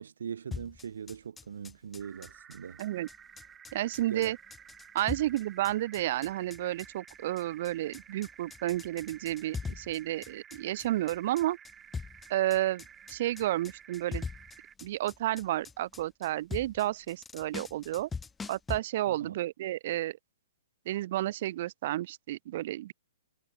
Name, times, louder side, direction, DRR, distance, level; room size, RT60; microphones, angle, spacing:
voice 1, 0.0-2.8 4.1-4.3 19.1-19.4, right 7 dB, 75° right, 4.6 m, -41 dB
sound 1, 0.5-18.8, left 5 dB, 5° left, 0.3 m, -42 dB
sound 2, 2.0-14.8, right 8 dB, 10° right, 6.0 m, -54 dB
voice 2, 3.7-4.4 4.9-11.6 12.3-12.8 13.1-14.3 14.8-18.1 18.5-20.2 20.8-22.9, right 14 dB, 35° right, 1.2 m, -31 dB
hypercardioid pair, 180°, 0 cm